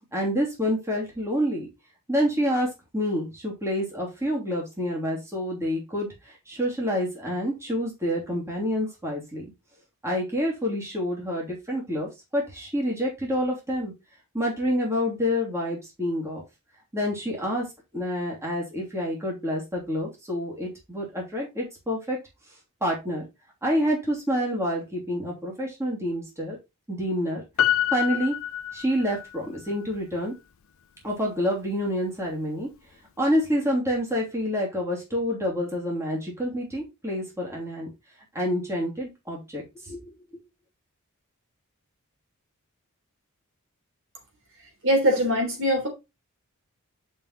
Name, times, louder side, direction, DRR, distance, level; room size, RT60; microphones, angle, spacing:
voice 1, 0.1-1.7 2.1-9.4 10.0-13.9 14.3-16.4 16.9-17.6 17.9-22.2 22.8-23.2 23.6-26.6 26.9-27.4 27.9-28.3 28.7-30.3 31.0-32.7 33.2-37.9 38.3-40.1, equal, 15° right, 2.8 m, -28 dB
Piano, 27.6-29.4 29.7-29.8, left 11 dB, 65° left, 0.5 m, -26 dB
voice 2, 44.8-45.9, equal, 60° right, 3.4 m, -22 dB
6.8 x 5.6 x 4.1 m
head